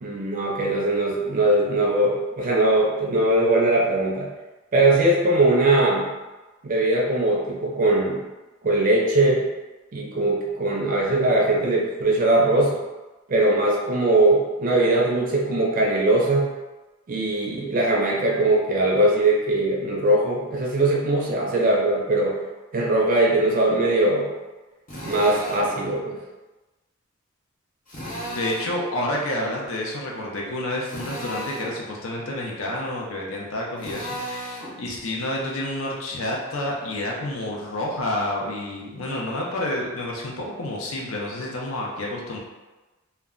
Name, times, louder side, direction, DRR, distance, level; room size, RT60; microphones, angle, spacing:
voice 1, 0.0-4.3 4.7-6.1 6.6-8.2 8.6-9.4 9.9-12.8 13.3-16.5 17.1-22.4 22.7-24.3 25.0-26.2, right 2 dB, 40° right, -2 dB, 0.4 m, -20 dB
Drill, 24.9-25.7 27.9-28.8 30.9-31.7 33.8-34.7, equal, 40° left, 0.8 m, -34 dB
voice 2, 28.3-42.4, left 1 dB, 80° left, -2 dB, 0.6 m, -29 dB
2.2 x 2.1 x 3.6 m, 1.2 s
head